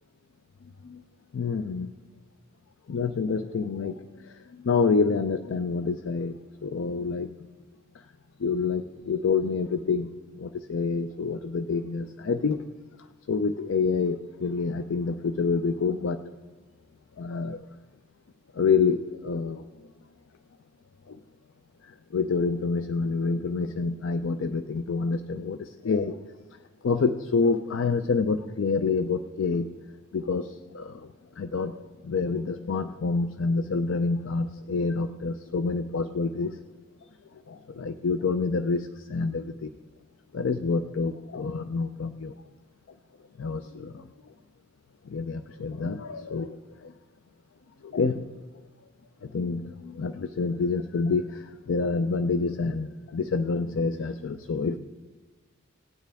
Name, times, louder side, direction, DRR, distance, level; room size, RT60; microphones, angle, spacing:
voice 1, 0.6-1.0 1.3-1.9 2.9-7.3 7.9-8.0 8.4-10.1 10.3-12.6 13.3-16.2 17.2-17.7 18.5-19.9 21.1-21.2 21.8-26.2 26.5-29.7 30.1-36.6 37.3-39.7 40.3-42.3 43.4-44.1 45.1-46.9 47.8-48.3 49.2-54.8, left 4 dB, 75° left, 10 dB, 0.4 m, -28 dB
17.0 x 9.0 x 3.5 m, 1.3 s
head